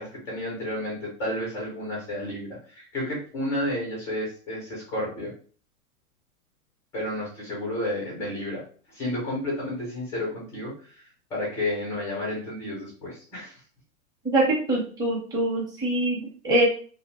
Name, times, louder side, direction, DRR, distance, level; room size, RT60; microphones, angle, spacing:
voice 1, 0.0-5.3 6.9-8.6 8.9-13.6, left 1 dB, 5° left, -5 dB, 0.3 m, -31 dB
voice 2, 14.2-16.7, right 1 dB, 10° right, -4 dB, 0.7 m, -24 dB
2.5 x 2.1 x 2.9 m, 0.42 s
hypercardioid pair, 120°, 46 cm